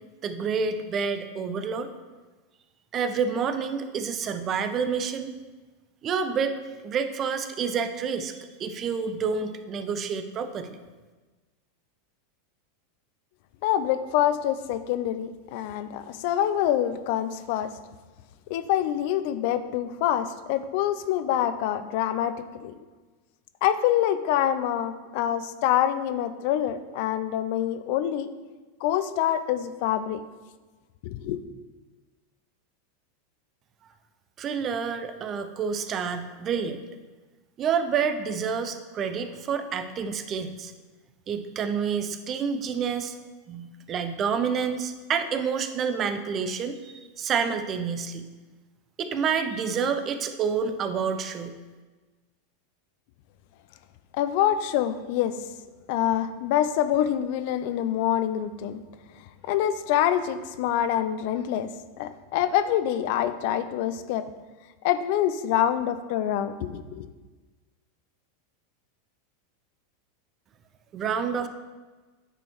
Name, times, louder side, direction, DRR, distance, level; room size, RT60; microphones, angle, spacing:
voice 1, 0.2-1.9 2.9-5.3 6.0-10.8 34.4-36.8 37.6-40.7 41.3-43.1 43.5-48.3 49.0-51.6 70.9-71.5, right 6 dB, 35° right, 9 dB, 0.6 m, -28 dB
voice 2, 13.6-17.7 18.5-22.8 23.6-28.3 28.8-30.2 31.0-31.4 54.1-55.3 55.9-58.8 59.5-61.7 62.0-64.3 64.8-67.1, left 11 dB, 60° left, 12 dB, 0.5 m, -26 dB
8.8 x 4.4 x 4.6 m, 1.3 s
hypercardioid pair, 100°, 0 cm